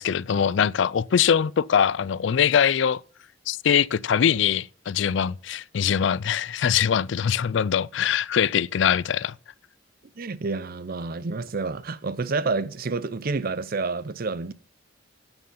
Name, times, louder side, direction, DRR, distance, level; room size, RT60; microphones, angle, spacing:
voice 1, 0.0-3.0 3.5-9.3, left 8 dB, 65° left, 0.4 m, -22 dB
voice 2, 10.2-14.5, right 3 dB, 50° right, 0.6 m, -29 dB
9.2 x 9.0 x 5.5 m
head